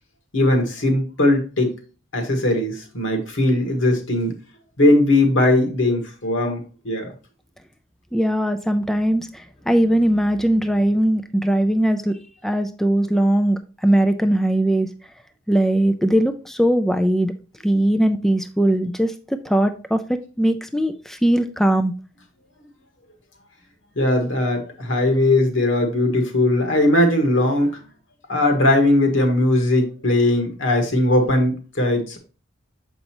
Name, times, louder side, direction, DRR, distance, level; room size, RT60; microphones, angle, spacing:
voice 1, 0.3-1.7 2.1-4.3 4.8-7.1 23.9-27.8 28.3-32.2, left 1 dB, 70° left, 4 dB, 1.6 m, -19 dB
voice 2, 8.1-14.9 15.5-17.3 17.6-21.9, right 1 dB, ahead, 8 dB, 0.4 m, -20 dB
6.7 x 5.3 x 2.9 m, 0.36 s
head